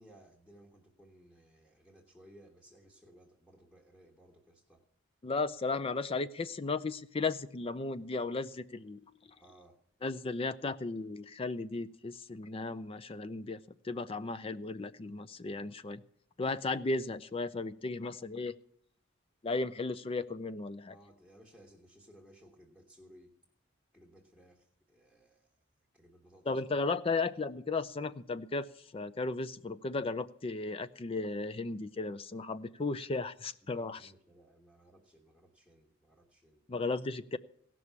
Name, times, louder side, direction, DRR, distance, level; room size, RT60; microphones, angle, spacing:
voice 1, 0.0-4.8 9.4-9.8 20.9-23.3 23.9-25.5 25.9-26.6 33.6-36.6, right 1 dB, 5° left, -1 dB, 1.4 m, -59 dB
voice 2, 5.2-9.0 10.0-13.6 13.8-16.0 16.4-18.5 19.4-20.9 26.5-28.7 28.9-34.0 36.7-37.4, left 3 dB, 30° left, 14 dB, 0.4 m, -35 dB
16.5 x 6.1 x 8.1 m, 0.65 s
head